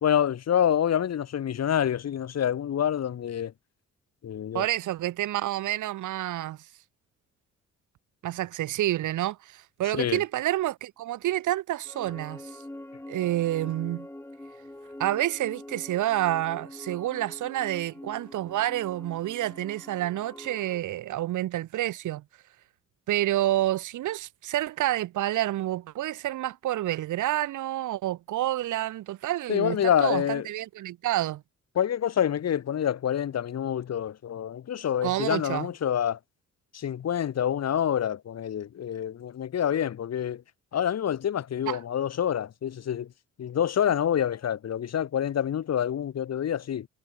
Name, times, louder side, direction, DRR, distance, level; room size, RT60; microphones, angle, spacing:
voice 1, 0.0-3.5 4.2-4.6 9.9-10.2 29.5-30.5 31.7-36.2 36.7-40.4 40.7-43.1 43.4-46.9, left 9 dB, 55° left, 2.6 m, -27 dB
voice 2, 4.5-6.6 8.2-12.5 13.1-14.1 15.0-22.2 23.1-31.4 35.0-35.7 41.7-41.8, right 14 dB, 80° right, 1.7 m, -29 dB
sound 1, 11.8-20.8, left 1 dB, 10° left, 4.1 m, -44 dB
cardioid pair, 90°, 30 cm